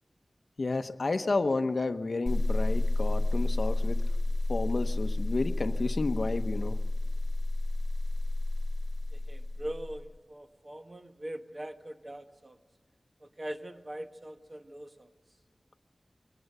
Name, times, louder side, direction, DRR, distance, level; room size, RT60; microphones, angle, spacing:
voice 1, 0.6-4.0 4.5-6.8, left 3 dB, 65° left, 9 dB, 0.8 m, -31 dB
sound 1, 2.3-10.1, left 2 dB, 45° left, 1.3 m, -30 dB
voice 2, 9.1-12.6 13.2-15.1, right 1 dB, 40° right, 5 dB, 1.4 m, -42 dB
22.5 x 18.0 x 7.9 m, 1.4 s
wide cardioid pair, 80°, 0 cm